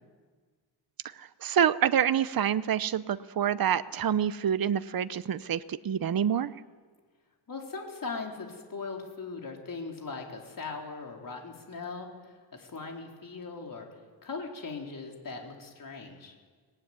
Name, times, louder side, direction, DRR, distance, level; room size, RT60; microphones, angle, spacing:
voice 1, 1.2-6.5, right 9 dB, 50° right, 14 dB, 0.8 m, -27 dB
voice 2, 7.5-13.9 14.2-16.3, left 4 dB, 45° left, 1 dB, 3.9 m, -39 dB
24.0 x 19.0 x 9.6 m, 1.5 s
wide cardioid pair, 125°, 44 cm